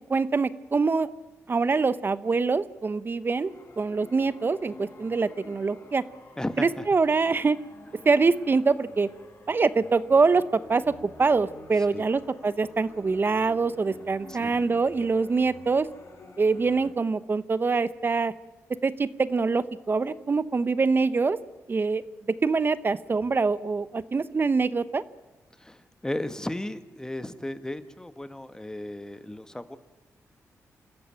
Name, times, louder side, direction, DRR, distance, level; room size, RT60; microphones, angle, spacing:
voice 1, 0.1-1.1 1.5-3.5 3.8-6.0 6.6-7.6 8.0-9.1 9.5-15.9 16.4-18.3 18.8-21.4 21.7-22.0 22.4-25.0, right 4 dB, 40° right, 15 dB, 0.9 m, -24 dB
sound 1, 3.3-16.9, left 2 dB, 50° left, 5.0 m, -49 dB
voice 2, 6.4-6.9 11.9-12.1 14.3-14.6 25.6-29.8, left 1 dB, 10° left, 11 dB, 1.5 m, -35 dB
28.0 x 13.5 x 9.0 m, 1.1 s
cardioid pair, 80°, 6 cm